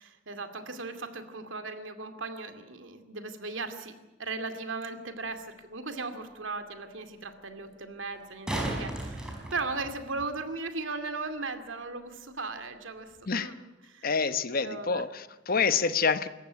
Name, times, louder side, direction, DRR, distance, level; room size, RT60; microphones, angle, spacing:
voice 1, 0.0-3.9 4.2-13.6 13.9-14.1 14.6-15.0, right 3 dB, 85° right, 2.4 m, -37 dB
sound 1, 5.2-5.3 8.1-10.2 13.1-13.2, right 1 dB, 5° right, 5.1 m, -35 dB
voice 2, 14.0-16.3, left 5 dB, 50° left, 0.9 m, -27 dB
26.0 x 14.5 x 9.8 m
head